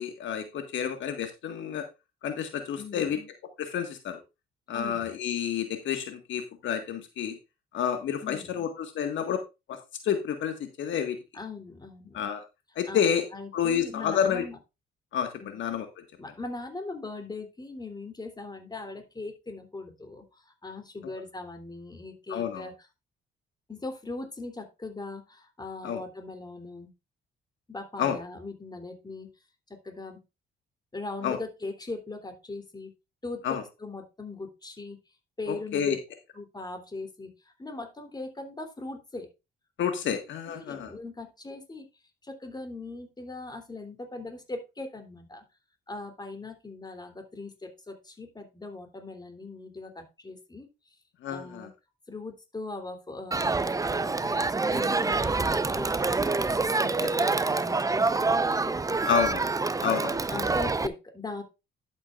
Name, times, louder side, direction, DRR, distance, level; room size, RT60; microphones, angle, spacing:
voice 1, 0.0-1.8 2.2-3.2 3.6-4.2 4.7-7.4 7.7-9.4 10.0-11.2 12.1-12.4 12.8-13.2 13.5-14.4 15.1-15.9 22.3-22.7 25.8-26.0 28.0-28.2 31.2-31.4 33.4-33.6 35.7-36.0 39.8-40.9 51.2-51.7 57.0-57.1 59.1-59.5 59.8-60.2, left 8 dB, 70° left, 7 dB, 1.7 m, -29 dB
voice 2, 2.8-3.3 4.7-5.1 8.2-8.7 11.3-12.3 12.9-14.6 15.4-15.6 16.2-22.9 23.7-26.9 27.7-29.3 29.7-30.2 30.9-32.9 33.2-35.0 35.4-36.0 36.3-39.3 40.5-41.9 42.2-45.4 45.9-50.7 51.3-51.7 52.1-54.3 54.6-56.5 56.8-58.8 59.0-59.2 60.3-61.4, left 3 dB, 20° left, 5 dB, 3.2 m, -40 dB
Crowd, 53.3-60.9, right 3 dB, 15° right, 0.7 m, -26 dB
11.5 x 8.6 x 2.5 m, 0.25 s
cardioid pair, 90°, 20 cm